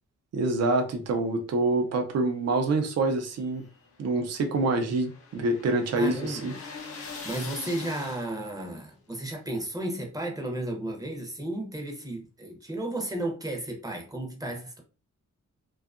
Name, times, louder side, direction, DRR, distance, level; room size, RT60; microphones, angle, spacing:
voice 1, 0.3-3.6 4.0-6.5, right 2 dB, 55° right, 0.5 m, -26 dB
sound 1, 3.2-8.6, left 4 dB, 50° left, 0.6 m, -43 dB
voice 2, 6.0-6.6 7.2-14.8, right 1 dB, 10° right, 0.6 m, -33 dB
2.6 x 2.4 x 2.4 m
wide cardioid pair, 135°, 30 cm